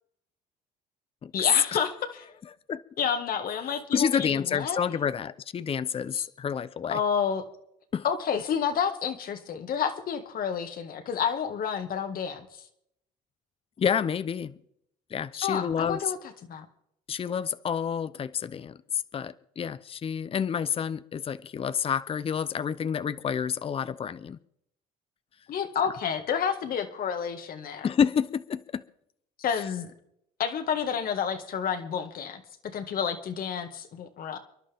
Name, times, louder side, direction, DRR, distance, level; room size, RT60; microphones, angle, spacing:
voice 1, 1.3-2.2 3.0-4.8 6.1-6.3 6.9-7.4 8.0-12.5 15.3-16.2 16.5-16.7 25.5-27.9 29.4-29.9 30.4-34.4, left 7 dB, 55° left, 1.8 m, -30 dB
voice 2, 3.9-7.0 7.9-8.0 13.8-14.6 15.1-16.1 17.1-24.4 27.8-28.8 29.5-29.6, left 7 dB, 30° left, 0.7 m, -29 dB
29.5 x 11.0 x 3.6 m
cardioid pair, 100°, 18 cm